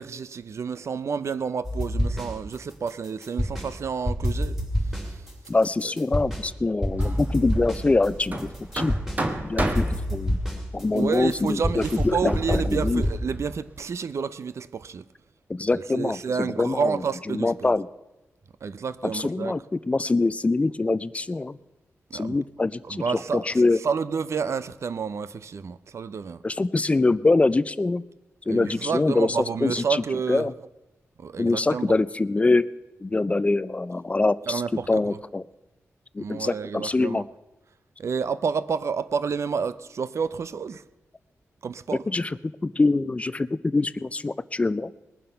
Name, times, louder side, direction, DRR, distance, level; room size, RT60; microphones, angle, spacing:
voice 1, 0.0-4.6 4.9-5.2 5.8-5.9 10.9-15.0 15.7-17.7 18.6-19.6 22.1-22.4 22.8-26.4 28.5-30.5 31.2-31.9 34.5-35.2 36.2-37.2 38.0-40.8 41.6-42.0, right 6 dB, 60° right, 0.5 m, -30 dB
sound 1, 1.6-2.5 2.9-3.7 4.1-6.5 6.8-9.2 9.6-13.2, equal, 5° right, 2.7 m, -27 dB
voice 2, 5.5-9.0 9.4-10.4 10.7-13.0 15.5-17.0 17.3-17.9 19.0-21.6 22.1-23.8 26.4-28.0 28.5-30.0 30.3-30.5 31.4-32.7 33.0-34.6 34.9-35.4 36.1-37.2 42.1-42.4 42.6-44.9, left 3 dB, 25° left, 0.4 m, -24 dB
Hammer, 6.9-13.8, right 2 dB, 30° right, 1.4 m, -34 dB
20.5 x 7.5 x 5.7 m
wide cardioid pair, 110°, 5 cm